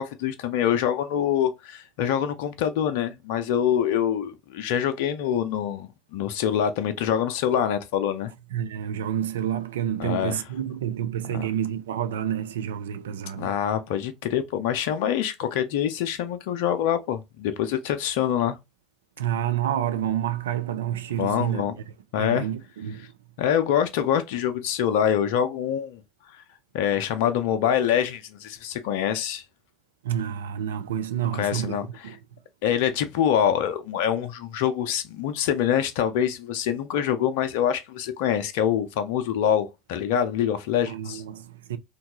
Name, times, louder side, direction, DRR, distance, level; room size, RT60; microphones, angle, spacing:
voice 1, 0.0-8.3 10.0-10.4 11.3-11.4 13.4-18.6 21.2-21.7 22.1-22.5 23.4-26.0 26.3-26.4 26.7-29.4 31.3-32.0 32.6-41.2, left 9 dB, 60° left, 0.4 m, -25 dB
voice 2, 8.5-13.6 19.2-21.6 22.2-23.1 30.0-32.2 40.8-41.8, right 10 dB, 75° right, 0.3 m, -29 dB
2.8 x 2.2 x 2.9 m
figure-of-eight pair, 70°, 0 cm